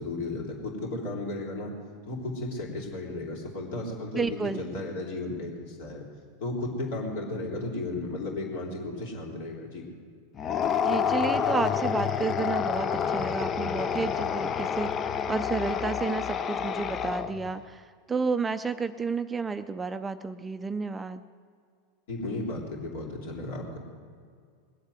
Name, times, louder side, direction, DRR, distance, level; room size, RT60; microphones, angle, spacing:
voice 1, 0.0-1.7 2.0-6.0 6.4-9.9 22.1-23.8, left 2 dB, 60° left, 0 dB, 3.8 m, -34 dB
voice 2, 4.1-4.8 10.8-21.2, right 4 dB, 15° right, 11 dB, 0.6 m, -31 dB
sound 1, 10.4-17.5, left 7 dB, 30° left, 0.7 m, -28 dB
20.5 x 8.1 x 7.9 m, 2.1 s
figure-of-eight pair, 85°, 0 cm